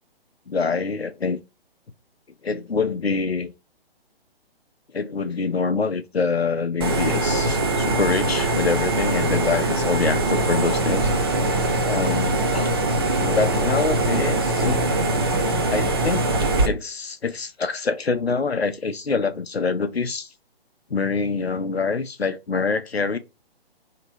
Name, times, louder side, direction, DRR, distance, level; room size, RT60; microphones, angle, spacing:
voice 1, 0.5-1.4 2.4-3.5 4.9-11.1 11.8-12.7 13.2-14.9 15.7-16.2 16.6-20.3 20.9-23.2, left 4 dB, 80° left, 0.7 m, -25 dB
sound 1, 6.8-16.7, right 2 dB, 25° right, 0.4 m, -22 dB
2.9 x 2.9 x 4.3 m
figure-of-eight pair, 130°, 31 cm